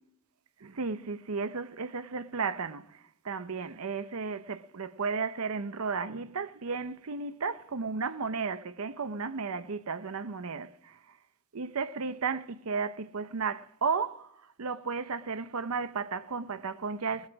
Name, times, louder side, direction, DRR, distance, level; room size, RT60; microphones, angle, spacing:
voice 1, 0.6-11.0 11.5-17.3, right 5 dB, 70° right, 0.7 m, -34 dB
20.0 x 8.2 x 6.1 m
head